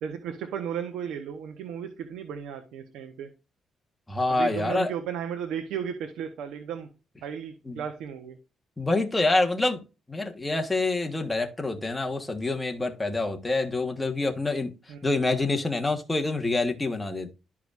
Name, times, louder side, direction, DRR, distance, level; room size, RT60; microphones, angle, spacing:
voice 1, 0.0-3.3 4.3-6.9 7.2-8.4 14.9-15.0, right 8 dB, 85° right, 0.9 m, -34 dB
voice 2, 4.1-4.9 7.7-7.8 8.8-9.8 10.1-14.7 15.0-17.3, left 2 dB, 15° left, 1.4 m, -26 dB
12.0 x 4.8 x 2.5 m
cardioid pair, 90°, 0 cm